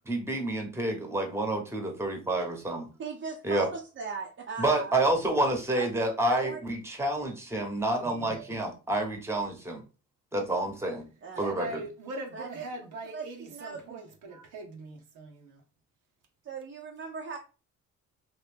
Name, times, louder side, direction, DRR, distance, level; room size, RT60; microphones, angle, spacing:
voice 1, 0.1-2.9 3.4-3.7 4.6-9.8 10.3-11.0 11.4-11.7, right 1 dB, 10° right, 1.0 m, -29 dB
voice 2, 3.0-4.9 5.7-6.0 6.3-6.6 11.2-11.4 12.3-12.6 13.1-14.0 16.4-17.4, right 5 dB, 40° right, 0.7 m, -38 dB
voice 3, 8.0-8.6 11.4-15.6, right 2 dB, 80° right, 0.9 m, -41 dB
3.0 x 2.6 x 3.3 m
cardioid pair, 90°, 30 cm